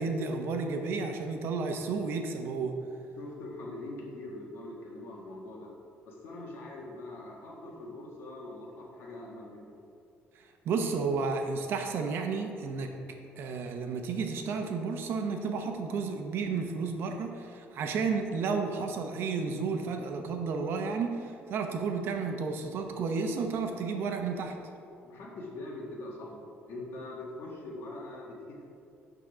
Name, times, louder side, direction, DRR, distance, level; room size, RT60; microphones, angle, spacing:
voice 1, 0.0-2.8 10.3-12.9 13.4-24.6, right 4 dB, 60° right, 4 dB, 0.9 m, -32 dB
voice 2, 3.2-5.7 6.1-9.8 25.0-28.6, left 2 dB, 60° left, -2 dB, 1.9 m, -43 dB
12.0 x 4.0 x 4.9 m, 2.6 s
cardioid pair, 160°, 4 cm